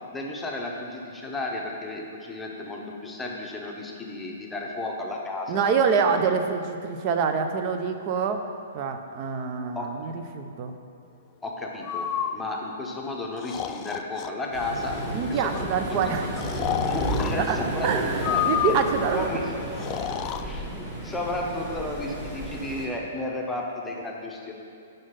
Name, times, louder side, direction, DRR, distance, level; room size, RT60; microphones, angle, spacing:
voice 1, 0.1-5.7 9.7-9.9 11.4-15.0 15.3-16.2 16.9-18.5 19.1-19.5 20.4-24.5, left 2 dB, 10° left, -1 dB, 0.9 m, -33 dB
voice 2, 5.5-8.4 8.7-10.7 15.1-16.3 17.4-17.6 17.8-19.3, right 6 dB, 40° right, 6 dB, 0.6 m, -26 dB
Breathing, 11.8-12.3 13.4-14.3 14.8-15.2 16.4-17.3 18.2-19.1 19.7-20.4, left 10 dB, 30° left, 0.3 m, -29 dB
Waves surf, 14.5-22.9, right 1 dB, 20° right, 1.8 m, -32 dB
6.2 x 5.2 x 5.7 m, 2.5 s
figure-of-eight pair, 115°, 0 cm